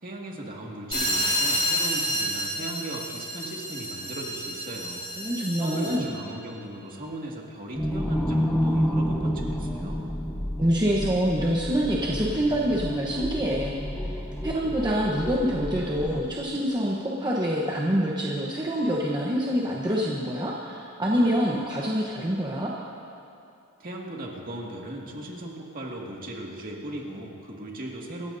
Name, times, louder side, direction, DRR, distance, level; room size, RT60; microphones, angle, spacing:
voice 1, 0.0-5.1 5.6-10.1 23.8-28.3, right 1 dB, 40° right, -2 dB, 2.1 m, -37 dB
sound 1, 0.9-6.1, equal, 25° left, 3.9 m, -29 dB
voice 2, 5.2-6.1 10.6-22.7, equal, 20° right, -4 dB, 1.0 m, -26 dB
sound 2, 7.8-16.2, equal, 5° left, 0.7 m, -29 dB
26.0 x 14.0 x 2.7 m, 2.7 s
head